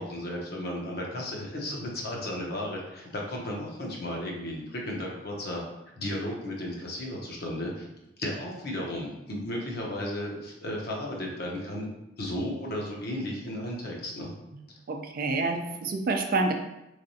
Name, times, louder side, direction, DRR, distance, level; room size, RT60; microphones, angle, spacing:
voice 1, 0.0-5.6 5.9-7.9 8.2-11.9 12.2-14.3, left 1 dB, 55° left, -1 dB, 0.8 m, -34 dB
voice 2, 14.9-16.5, right 3 dB, 50° right, 4 dB, 0.4 m, -27 dB
3.8 x 3.2 x 2.7 m, 0.90 s
head